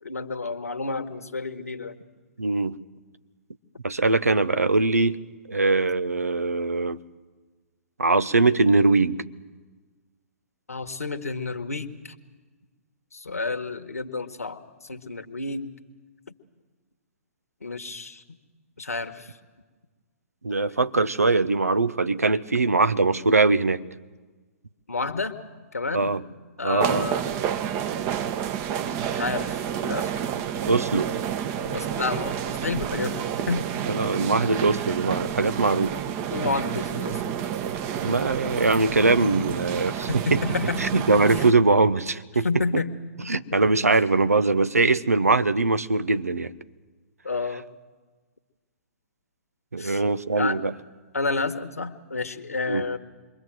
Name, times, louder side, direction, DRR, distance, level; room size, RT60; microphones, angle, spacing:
voice 1, 0.0-2.0 10.7-12.1 13.1-14.6 14.9-15.7 17.6-18.2 18.8-19.3 20.7-20.8 24.9-25.4 25.7-26.2 26.6-27.2 29.1-30.1 31.7-33.8 36.3-37.4 40.1-41.1 42.4-42.9 43.3-43.6 47.2-47.7 49.8-50.0 50.4-50.6 51.1-53.0, left 3 dB, 80° left, 6 dB, 1.7 m, -30 dB
voice 2, 2.4-2.8 3.8-5.2 5.5-7.0 8.0-9.2 20.4-23.8 25.9-26.2 26.6-27.1 30.7-31.1 33.9-35.9 38.0-40.4 40.8-42.5 42.7-42.8 43.3-46.5 49.7-50.7 52.7-52.9, right 3 dB, 85° right, 13 dB, 1.0 m, -22 dB
sound 1, 26.8-41.5, right 9 dB, 30° right, 1.2 m, -29 dB
27.5 x 23.0 x 7.9 m, 1.4 s
figure-of-eight pair, 120°, 8 cm